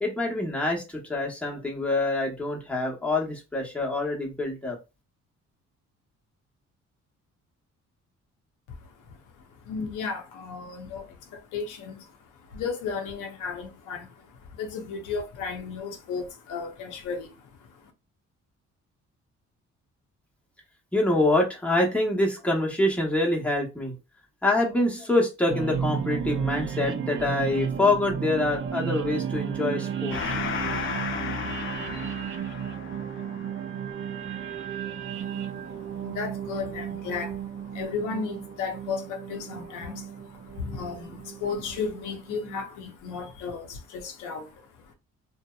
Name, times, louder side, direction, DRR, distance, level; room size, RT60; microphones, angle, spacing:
voice 1, 0.0-4.8 20.9-23.9 24.4-30.3, left 2 dB, 5° left, 0.8 m, -25 dB
voice 2, 8.7-17.9 35.1-44.9, left 5 dB, 90° left, 0.6 m, -35 dB
sound 1, 25.5-42.6, right 8 dB, 40° right, 0.4 m, -34 dB
Gong, 30.1-37.1, left 6 dB, 45° left, 0.4 m, -35 dB
2.7 x 2.0 x 2.2 m
cardioid pair, 90°, 30 cm